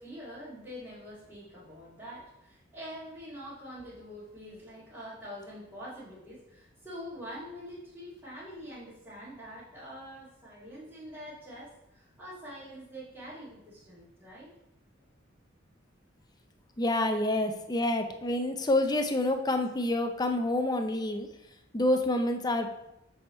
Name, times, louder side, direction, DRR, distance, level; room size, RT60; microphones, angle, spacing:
voice 1, 0.0-14.5 18.2-18.3, equal, 10° right, -14 dB, 2.1 m, -45 dB
voice 2, 16.8-21.3 21.7-22.7, left 1 dB, 20° left, 5 dB, 0.6 m, -28 dB
7.0 x 3.5 x 4.3 m, 0.86 s
head